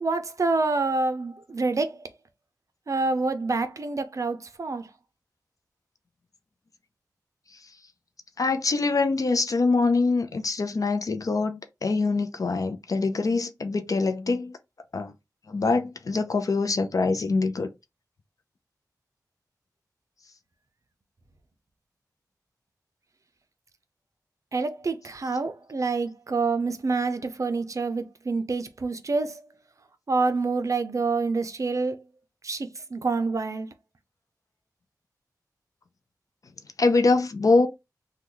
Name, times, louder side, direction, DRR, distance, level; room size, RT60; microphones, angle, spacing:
voice 1, 0.0-2.0 2.9-4.9 24.5-29.3 30.1-31.9 32.4-33.7, right 3 dB, 50° right, 0.5 m, -27 dB
voice 2, 8.4-14.5 14.9-15.1 15.5-17.7 36.8-37.7, left 3 dB, 55° left, 0.4 m, -24 dB
3.0 x 2.2 x 3.7 m
wide cardioid pair, 105°, 7 cm